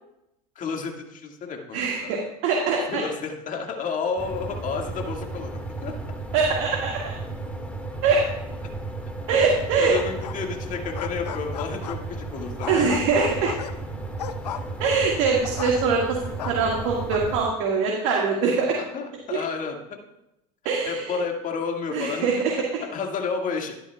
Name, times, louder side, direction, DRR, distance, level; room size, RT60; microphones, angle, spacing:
voice 1, 0.6-2.1 2.9-6.0 9.8-12.8 18.9-20.0 20.9-22.3 22.9-23.7, left 5 dB, 40° left, 2 dB, 2.0 m, -31 dB
voice 2, 1.7-3.0 6.3-7.1 8.0-8.2 9.3-9.9 12.7-13.5 14.8-18.8 20.7-21.2 21.9-22.5, right 5 dB, 65° right, -1 dB, 1.9 m, -23 dB
sound 1, 4.2-17.4, right 2 dB, 5° left, 1.8 m, -34 dB
sound 2, 9.9-10.6 10.8-12.2 12.6-16.1 16.4-17.2, left 9 dB, 90° left, 0.6 m, -35 dB
13.0 x 10.5 x 2.3 m, 0.88 s
hypercardioid pair, 85°, 20 cm